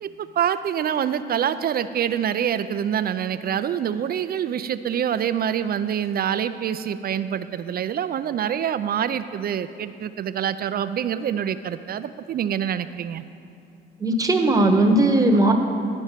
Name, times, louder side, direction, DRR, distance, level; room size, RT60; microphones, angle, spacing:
voice 1, 0.0-13.2, right 9 dB, 50° right, 12 dB, 0.4 m, -26 dB
voice 2, 14.0-15.5, right 2 dB, 15° right, 3 dB, 1.0 m, -18 dB
11.5 x 5.4 x 7.3 m, 2.5 s
cardioid pair, 90°, 20 cm